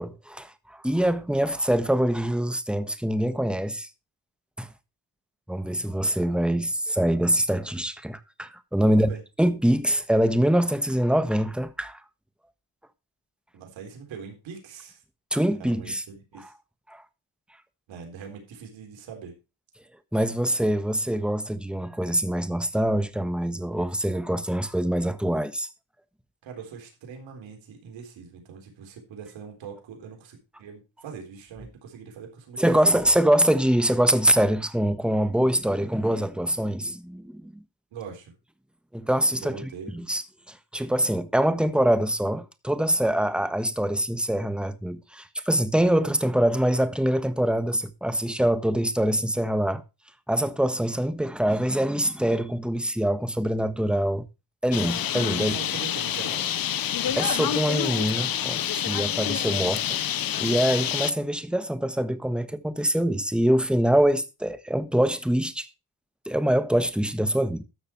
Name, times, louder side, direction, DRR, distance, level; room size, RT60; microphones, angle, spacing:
voice 1, 0.0-3.9 4.6-4.7 5.5-12.0 15.3-16.0 16.9-17.0 20.1-25.7 32.6-37.6 38.9-39.6 39.9-40.2 40.5-49.8 50.3-54.3 54.6-55.5 56.9-60.0 60.4-65.7 66.3-67.6, right 1 dB, ahead, 1.3 m, -24 dB
voice 2, 8.9-9.2 13.5-15.0 15.6-16.5 17.9-19.4 26.4-33.0 37.9-38.3 39.3-40.0 55.4-56.5, right 6 dB, 85° right, 4.0 m, -42 dB
Bird, 54.7-61.1, left 10 dB, 50° left, 0.8 m, -27 dB
13.0 x 6.6 x 4.6 m
cardioid pair, 75°, 45 cm